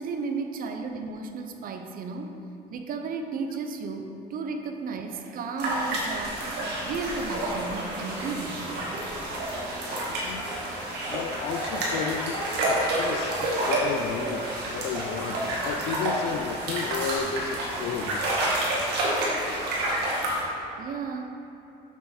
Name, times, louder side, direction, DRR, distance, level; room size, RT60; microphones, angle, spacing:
voice 1, 0.0-2.4 2.7-6.5 6.8-8.8 20.8-21.4, right 4 dB, 55° right, 5 dB, 0.7 m, -34 dB
sound 1, 5.6-20.4, right 1 dB, 80° right, 1.8 m, -29 dB
voice 2, 9.9-10.5 11.1-18.2, left 7 dB, 70° left, 9 dB, 0.5 m, -33 dB
7.1 x 6.2 x 4.3 m, 2.9 s
cardioid pair, 110°, 17 cm